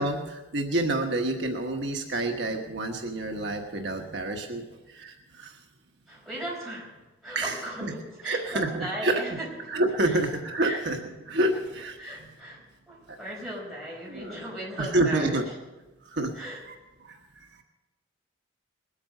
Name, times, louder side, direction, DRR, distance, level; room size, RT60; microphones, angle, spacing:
voice 1, 0.0-5.6 7.3-7.9 8.2-9.2 9.7-12.0 13.1-13.2 14.1-14.4 14.8-15.4 16.0-16.8 17.0-17.6, right 1 dB, 60° right, 3 dB, 1.3 m, -29 dB
voice 2, 6.1-6.9 7.2-9.5 10.0-10.2 10.6-10.8 12.0-12.6 12.9-15.4 16.3-16.6, right 1 dB, ahead, -5 dB, 5.2 m, -37 dB
20.5 x 8.8 x 6.5 m, 1.1 s
head